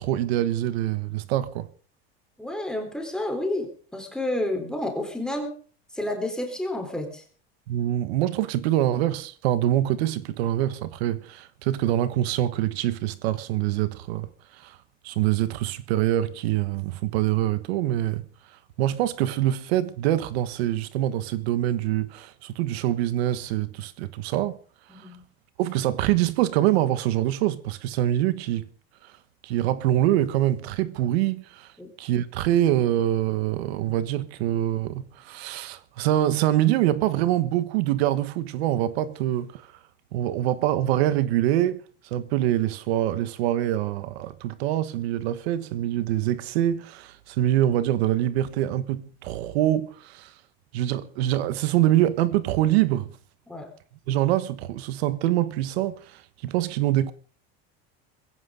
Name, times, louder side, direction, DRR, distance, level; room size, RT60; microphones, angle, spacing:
voice 1, 0.0-1.7 7.7-14.8 15.0-18.2 18.8-24.6 24.9-25.1 25.6-28.7 29.0-29.1 29.4-31.7 32.0-39.7 40.1-41.8 42.1-50.3 50.7-53.1 54.1-57.1, right 13 dB, 85° right, 1.3 m, -25 dB
voice 2, 2.4-5.6 5.9-7.2 24.9-25.2 31.8-31.9 53.5-53.7, left 1 dB, ahead, 3.9 m, -30 dB
21.5 x 16.5 x 3.9 m
supercardioid pair, 145°, 30 cm